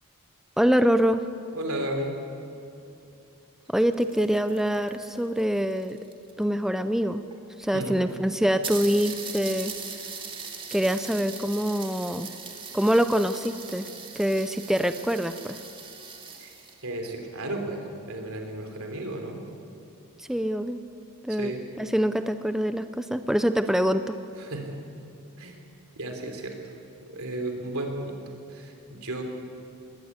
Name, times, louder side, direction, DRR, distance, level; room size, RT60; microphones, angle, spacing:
voice 1, 0.6-1.2 3.7-6.0 6.4-7.2 7.6-9.7 10.7-12.3 12.7-13.9 14.2-15.6 20.2-20.8 21.2-21.5 21.8-24.2, equal, ahead, 9 dB, 0.5 m, -25 dB
voice 2, 1.5-2.2 7.7-8.0 16.4-16.5 16.8-19.4 21.3-21.6 24.4-24.8 25.4-25.6 26.0-26.6 27.0-28.2 28.5-29.2, right 1 dB, 70° right, 4 dB, 3.4 m, -33 dB
sound 1, 3.7-6.4 7.3-7.4 7.6-7.7 8.1-8.2 8.6-16.8, right 5 dB, 25° right, 2.2 m, -40 dB
20.5 x 17.5 x 9.7 m, 2.6 s
head